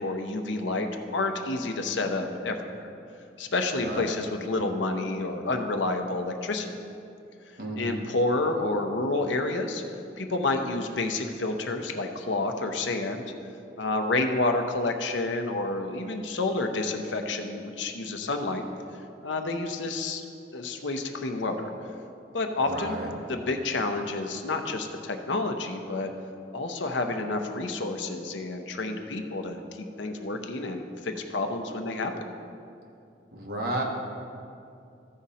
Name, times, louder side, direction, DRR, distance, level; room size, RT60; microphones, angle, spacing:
voice 1, 0.0-2.9 3.4-6.7 7.8-9.8 10.2-13.2 13.8-18.6 19.2-20.2 20.5-21.7 22.3-23.0 23.3-26.1 26.5-32.3, left 2 dB, 80° left, 5 dB, 0.7 m, -29 dB
voice 2, 3.8-4.2 7.6-8.0 22.6-23.1 33.3-33.8, right 1 dB, 55° right, -1 dB, 1.3 m, -32 dB
14.5 x 5.1 x 4.2 m, 2.6 s
head